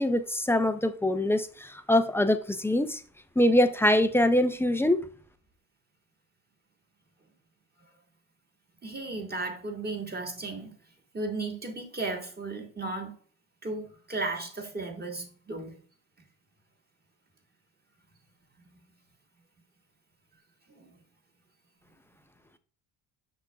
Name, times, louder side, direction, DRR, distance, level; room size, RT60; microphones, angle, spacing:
voice 1, 0.0-3.0 3.4-5.1, left 1 dB, 5° left, 0.3 m, -24 dB
voice 2, 8.8-10.8 11.1-13.2 13.6-15.8 18.6-18.8 20.7-21.0, right 3 dB, 20° right, 1.6 m, -35 dB
6.8 x 6.0 x 2.3 m
cardioid pair, 100°, 42 cm